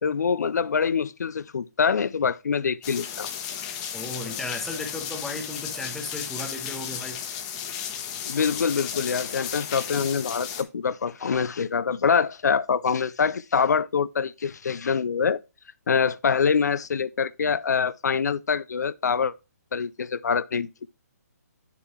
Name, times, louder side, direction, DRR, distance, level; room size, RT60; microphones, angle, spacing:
voice 1, 0.0-3.3 8.3-15.4 15.9-19.3 19.7-20.7, left 6 dB, 85° left, 0.5 m, -25 dB
sound 1, 2.8-10.6, left 8 dB, 25° left, 1.1 m, -34 dB
voice 2, 3.9-7.2, left 2 dB, 5° left, 1.1 m, -35 dB
9.2 x 6.8 x 2.9 m
hypercardioid pair, 160°, 9 cm